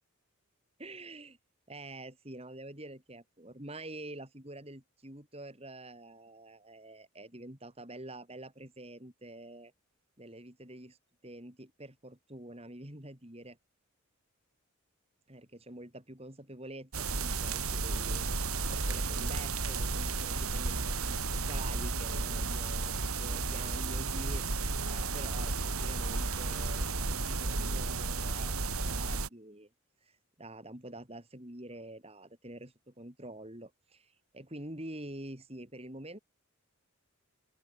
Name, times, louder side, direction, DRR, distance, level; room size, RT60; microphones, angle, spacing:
voice 1, 0.8-1.4 1.7-9.7 10.2-11.0 11.2-13.6 15.3-18.3 18.7-24.5 24.9-28.5 28.8-29.7 30.0-36.2, right 1 dB, 25° right, 3.5 m, -47 dB
sound 1, 16.9-29.3, right 3 dB, 80° right, 3.5 m, -33 dB
open air
head